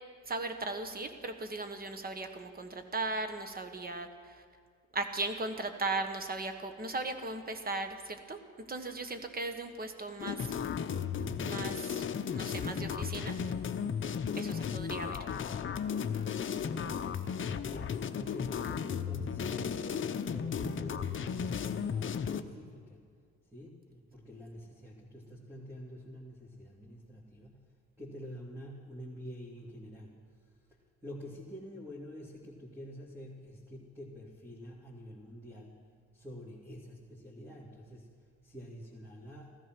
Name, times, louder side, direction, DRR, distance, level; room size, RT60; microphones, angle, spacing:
voice 1, 0.3-4.4 4.9-8.4 8.7-10.5 11.4-12.0 12.3-13.4 14.3-15.2, right 3 dB, 30° right, 7 dB, 1.4 m, -37 dB
sound 1, 10.2-22.4, left 7 dB, 40° left, 0.7 m, -35 dB
voice 2, 17.7-23.0 23.4-35.8 36.1-38.1 38.4-39.6, equal, 10° right, -5 dB, 2.4 m, -47 dB
15.5 x 13.5 x 6.1 m, 2.1 s
cardioid pair, 90°, 30 cm